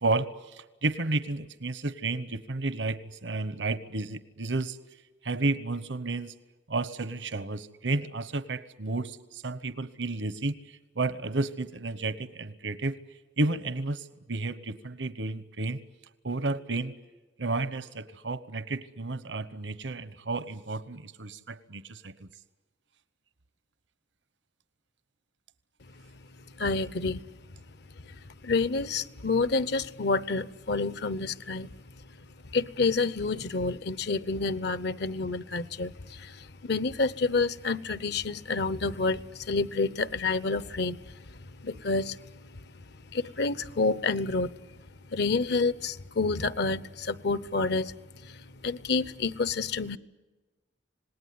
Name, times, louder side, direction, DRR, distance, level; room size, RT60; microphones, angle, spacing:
voice 1, 0.0-4.8 5.2-6.3 6.7-13.0 13.4-15.8 16.2-17.0 17.4-22.3, right 2 dB, 80° right, 14 dB, 1.1 m, -32 dB
voice 2, 26.6-27.2 28.4-31.7 32.5-36.3 36.6-41.0 41.6-42.2 43.1-44.5 45.1-47.9 48.3-48.4 48.6-50.0, left 3 dB, 65° left, 18 dB, 0.8 m, -28 dB
26.5 x 19.5 x 9.5 m, 1.2 s
head